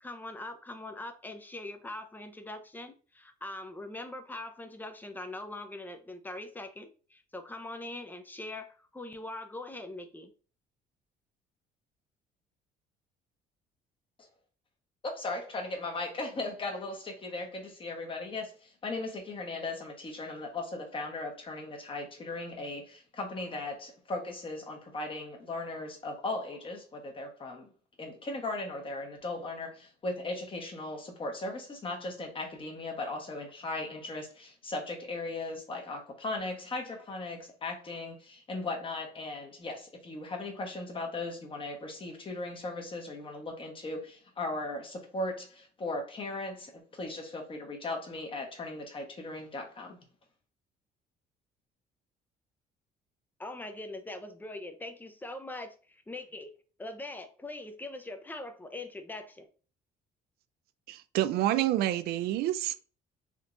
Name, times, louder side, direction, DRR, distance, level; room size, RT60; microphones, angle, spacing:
voice 1, 0.0-10.3 53.4-55.7 56.1-56.5 56.8-59.5, left 2 dB, 10° left, 0.5 m, -42 dB
voice 2, 15.0-27.7 28.0-50.0, left 2 dB, 30° left, 1.0 m, -37 dB
voice 3, 60.9-62.8, right 14 dB, 70° right, 0.4 m, -28 dB
3.5 x 2.8 x 2.5 m
cardioid pair, 110°, 17 cm